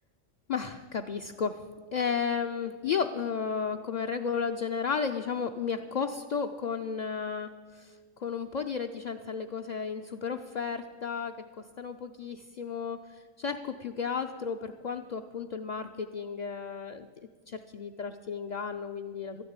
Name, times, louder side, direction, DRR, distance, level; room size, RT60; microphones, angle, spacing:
voice 1, 0.5-1.6 1.9-7.9 8.2-11.3 11.8-17.1 17.5-19.4, left 6 dB, 50° left, 4 dB, 0.5 m, -33 dB
13.0 x 10.0 x 8.8 m, 1.5 s
omnidirectional pair, 1.3 m